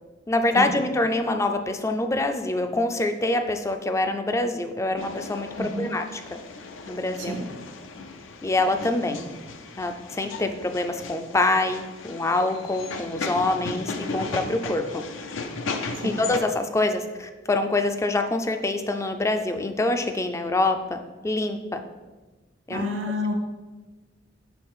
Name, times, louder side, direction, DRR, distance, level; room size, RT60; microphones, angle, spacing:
voice 1, 0.3-6.2 6.9-7.4 8.4-9.3 9.8-15.0 16.0-21.0 21.2-21.8 22.7-22.9, left 2 dB, 15° left, 7 dB, 0.3 m, -25 dB
sound 1, 5.0-16.4, left 3 dB, 85° left, 0.5 m, -36 dB
voice 2, 5.6-5.9 7.2-7.4 9.1-9.2 16.0-16.2 22.7-23.3, left 2 dB, 70° right, 4 dB, 0.8 m, -29 dB
6.2 x 3.2 x 4.7 m, 1.2 s
head